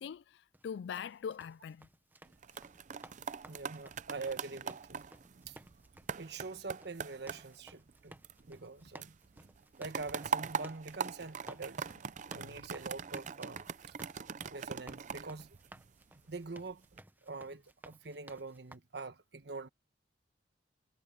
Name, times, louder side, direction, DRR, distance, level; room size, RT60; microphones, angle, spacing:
voice 1, 0.0-1.9 12.3-12.6, left 7 dB, 70° left, 0.3 m, -42 dB
sound 1, 0.5-18.8, right 1 dB, 10° right, 0.9 m, -57 dB
sound 2, 2.3-8.7 9.0-16.2 16.7-17.0, right 6 dB, 45° right, 0.5 m, -42 dB
voice 2, 3.5-5.0 5.5-5.6 6.2-8.2 8.5-9.2 9.8-11.9 12.3-13.9 14.5-15.6 16.3-16.8 17.2-19.7, right 3 dB, 65° right, 1.2 m, -44 dB
head